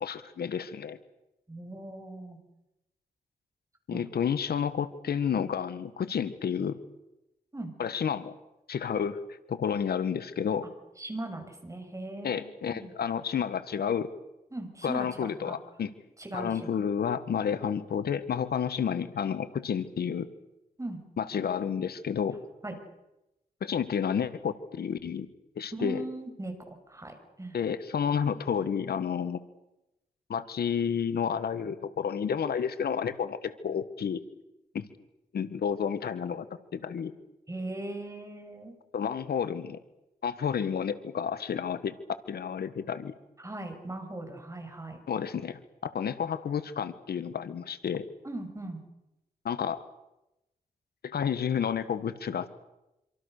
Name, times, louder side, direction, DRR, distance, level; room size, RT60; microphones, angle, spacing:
voice 1, 0.0-1.0 3.9-6.8 7.8-8.3 8.7-10.6 12.2-14.1 14.8-15.9 16.3-20.3 21.2-22.4 23.6-25.3 25.5-26.0 27.5-29.4 30.3-34.2 34.7-34.8 35.3-36.4 36.7-37.1 38.9-39.8 40.2-42.0 42.3-43.1 45.1-48.0 49.4-49.8 51.0-52.5, left 7 dB, 85° left, 13 dB, 1.5 m, -30 dB
voice 2, 1.5-2.4 3.9-4.0 7.5-7.7 11.0-12.9 14.5-15.6 16.2-16.9 20.8-21.0 22.6-22.8 25.7-26.5 26.9-27.6 37.5-38.8 43.4-45.0 48.2-48.8, right 2 dB, 20° right, 5 dB, 6.7 m, -39 dB
26.5 x 26.0 x 6.7 m, 0.94 s
cardioid pair, 80°, 16 cm